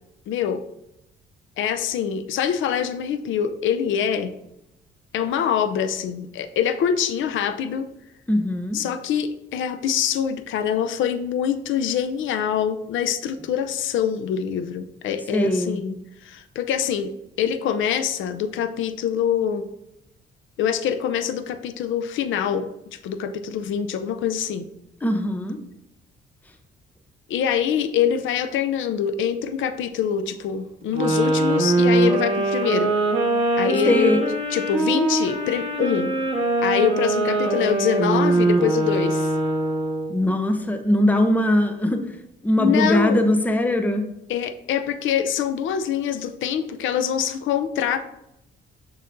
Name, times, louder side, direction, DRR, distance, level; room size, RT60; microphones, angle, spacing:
voice 1, 0.3-0.6 1.6-4.3 5.1-7.9 8.7-17.1 17.4-19.7 20.6-24.7 27.3-33.0 33.6-34.1 34.5-36.2 36.6-39.3 42.6-43.2 44.3-48.0, left 8 dB, 75° left, 10 dB, 0.5 m, -24 dB
voice 2, 8.3-8.8 15.3-15.8 25.0-25.6 33.8-34.2 40.1-42.0 42.4-44.0, left 1 dB, 10° left, 6 dB, 0.7 m, -20 dB
sound 1, 30.9-40.2, right 2 dB, 30° right, 1.8 m, -22 dB
6.6 x 5.7 x 2.6 m, 0.84 s
cardioid pair, 90°, 20 cm